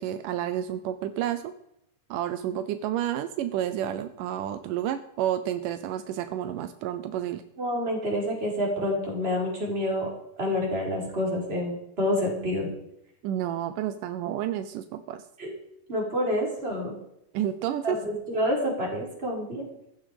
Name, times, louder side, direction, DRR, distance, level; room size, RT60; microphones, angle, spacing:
voice 1, 0.0-1.5 2.1-7.4 13.2-15.2 17.3-18.0, right 11 dB, 80° right, 11 dB, 2.4 m, -30 dB
voice 2, 7.6-10.1 10.4-12.7 15.4-15.5 15.9-16.9 17.8-19.7, left 1 dB, 15° right, -1 dB, 4.9 m, -28 dB
14.5 x 13.0 x 5.0 m, 0.79 s
omnidirectional pair, 3.7 m